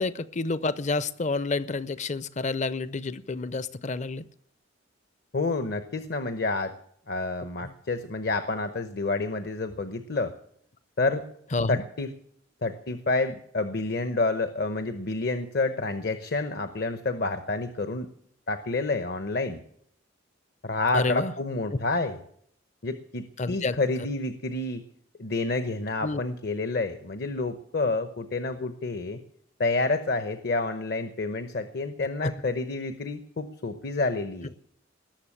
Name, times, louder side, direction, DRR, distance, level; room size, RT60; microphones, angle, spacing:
voice 1, 0.0-4.2 11.5-11.7 20.9-21.3 23.4-23.8 26.0-26.2 28.6-28.7 32.2-32.3, left 3 dB, 40° left, 16 dB, 0.6 m, -29 dB
voice 2, 5.3-6.7 7.1-10.3 11.0-11.2 11.7-12.1 12.6-18.1 18.5-19.6 20.6-22.2 22.8-24.8 25.2-29.2 29.6-34.5, left 3 dB, 55° left, 10 dB, 0.9 m, -29 dB
19.5 x 7.2 x 9.9 m, 0.66 s
head